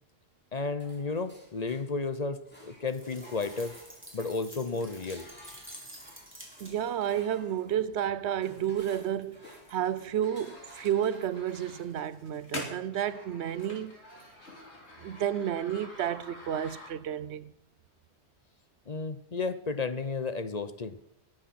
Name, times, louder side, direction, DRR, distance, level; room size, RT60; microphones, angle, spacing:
voice 1, 0.5-3.8 4.1-5.3 18.9-21.0, left 4 dB, 40° left, 0.9 m, -33 dB
sound 1, 0.8-2.1 2.4-11.9, equal, 10° left, 4.1 m, -55 dB
sound 2, 2.9-7.0, right 1 dB, 10° right, 3.4 m, -49 dB
voice 2, 6.6-14.0 15.0-17.5, right 10 dB, 80° right, 0.9 m, -31 dB
sound 3, 8.4-17.3, left 1 dB, 85° left, 3.6 m, -47 dB
19.5 x 7.7 x 5.9 m
omnidirectional pair, 1.1 m